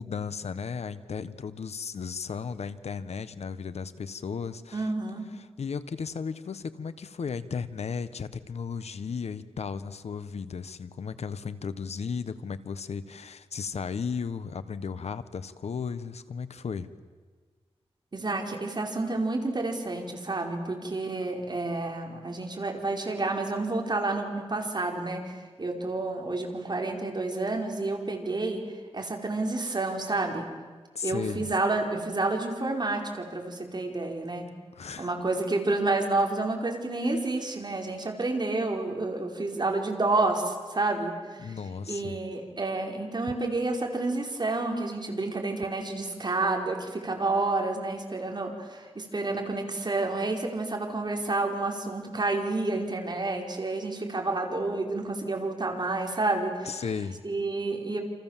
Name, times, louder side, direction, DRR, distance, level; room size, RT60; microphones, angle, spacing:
voice 1, 0.0-4.9 5.3-16.9 30.9-31.5 34.7-35.1 41.4-42.1 56.6-57.2, left 6 dB, 80° left, 13 dB, 1.2 m, -35 dB
voice 2, 4.7-5.3 18.1-28.6 28.9-30.5 31.0-34.5 35.0-41.5 41.9-56.7 57.2-58.0, right 2 dB, 40° right, 2 dB, 5.0 m, -29 dB
28.5 x 28.0 x 7.5 m, 1.4 s
wide cardioid pair, 75°, 11 cm